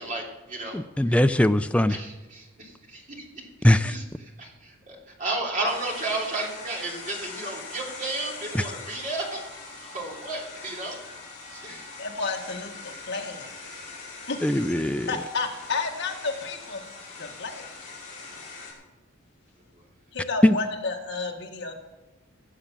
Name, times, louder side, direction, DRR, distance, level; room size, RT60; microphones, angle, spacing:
voice 1, 0.0-1.1 1.9-3.2 3.8-4.0 4.4-11.0 11.5-11.9 13.7-13.9 19.8-19.9, right 2 dB, 35° right, -1 dB, 3.2 m, -33 dB
voice 2, 0.7-2.0 3.6-3.9 8.5-8.6 14.4-15.1 20.4-20.6, left 1 dB, 5° left, 9 dB, 0.4 m, -20 dB
sound 1, 5.6-18.7, left 3 dB, 35° left, 5.4 m, -42 dB
voice 3, 12.0-13.5 14.3-14.7 15.1-16.8 17.2-17.7 20.1-21.7, left 4 dB, 55° left, 1 dB, 1.9 m, -31 dB
16.5 x 7.2 x 7.5 m, 1.1 s
head